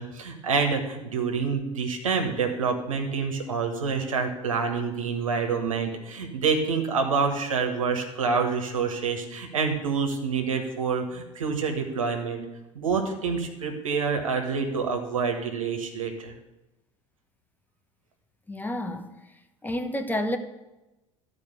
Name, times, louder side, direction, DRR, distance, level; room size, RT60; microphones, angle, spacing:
voice 1, 0.0-12.4 12.7-16.3, right 5 dB, 85° right, 4 dB, 1.6 m, -27 dB
voice 2, 18.5-19.1 19.6-20.4, left 1 dB, 10° left, 7 dB, 1.1 m, -29 dB
12.5 x 4.9 x 8.2 m, 0.99 s
hypercardioid pair, 70°, 17 cm